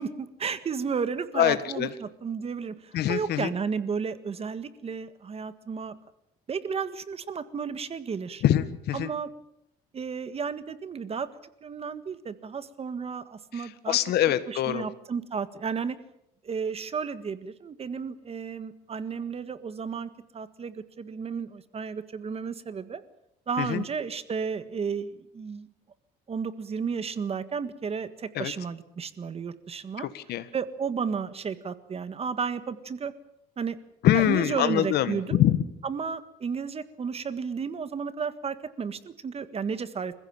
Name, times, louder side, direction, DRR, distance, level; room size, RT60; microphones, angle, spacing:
voice 1, 0.0-5.9 6.5-8.4 8.9-9.3 9.9-11.3 11.6-14.0 14.5-16.0 16.4-23.0 23.5-25.7 26.3-30.1 30.5-33.1 33.6-33.8 34.1-35.4 35.8-40.1, right 6 dB, 35° right, 13 dB, 1.7 m, -33 dB
voice 2, 1.4-1.9 2.9-3.5 8.4-9.1 13.6-14.9 23.6-23.8 28.4-28.5 30.0-30.4 34.0-35.6, left 12 dB, 75° left, 13 dB, 1.6 m, -24 dB
27.5 x 15.5 x 8.9 m, 0.76 s
cardioid pair, 110°, 17 cm